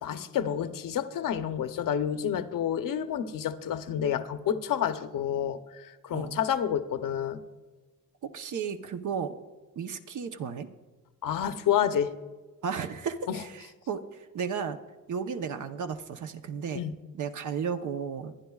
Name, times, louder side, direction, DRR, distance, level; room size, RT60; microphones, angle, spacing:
voice 1, 0.0-7.4 11.2-12.1 13.3-13.4 16.7-16.9, left 9 dB, 70° left, 9 dB, 0.8 m, -29 dB
voice 2, 8.2-9.3 9.8-10.7 12.6-14.8 15.1-16.8 17.1-18.5, right 6 dB, 60° right, 7 dB, 0.9 m, -34 dB
22.5 x 10.0 x 2.4 m, 1.2 s
cardioid pair, 95°, 34 cm